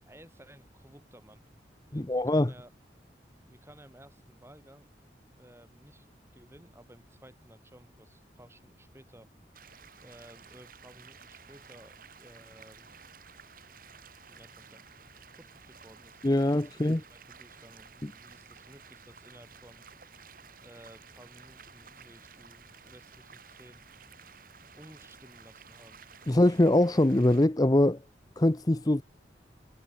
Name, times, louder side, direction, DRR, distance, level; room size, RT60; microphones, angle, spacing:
voice 1, 0.0-1.4 1.9-2.7 3.4-4.9 5.4-6.1 6.3-9.3 10.0-12.9 14.3-14.8 15.3-16.8 17.1-19.8 20.6-23.8 24.7-26.4, right 1 dB, 15° right, 7.4 m, -55 dB
voice 2, 1.9-2.5 16.2-17.0 18.0-18.1 26.3-28.0 28.4-29.0, left 1 dB, 20° left, 0.7 m, -23 dB
sound 1, 9.5-27.5, right 7 dB, 50° right, 4.3 m, -54 dB
head